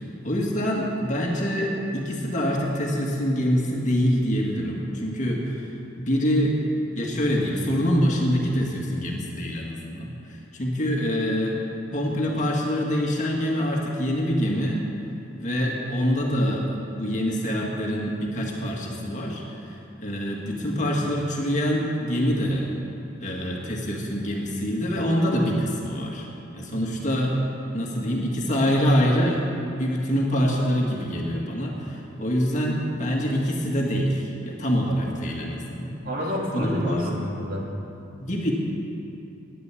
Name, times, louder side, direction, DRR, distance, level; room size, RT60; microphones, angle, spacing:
voice 1, 0.2-5.7 6.0-6.6 7.0-10.1 10.5-11.6 11.9-14.9 15.4-16.7 17.0-22.7 23.2-26.3 26.5-27.4 27.7-29.4 29.7-36.0 36.5-37.1 38.2-38.5, equal, 40° left, -2 dB, 2.0 m, -25 dB
voice 2, 26.7-27.0 36.0-37.7, equal, 50° right, -2 dB, 2.1 m, -30 dB
11.0 x 10.5 x 8.5 m, 2.8 s
head